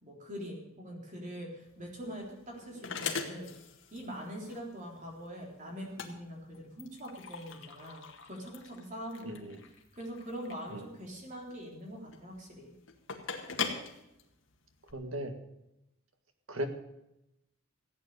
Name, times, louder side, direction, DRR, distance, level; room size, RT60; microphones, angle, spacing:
voice 1, 0.0-3.5 3.9-9.5 10.0-12.7, equal, 35° right, 0 dB, 3.7 m, -43 dB
sound 1, 1.6-14.9, left 6 dB, 70° left, 1.9 m, -42 dB
voice 2, 9.2-9.6 10.7-10.9 14.9-15.3 16.5-16.7, equal, 85° right, 7 dB, 1.8 m, -37 dB
15.5 x 9.1 x 6.9 m, 0.87 s
head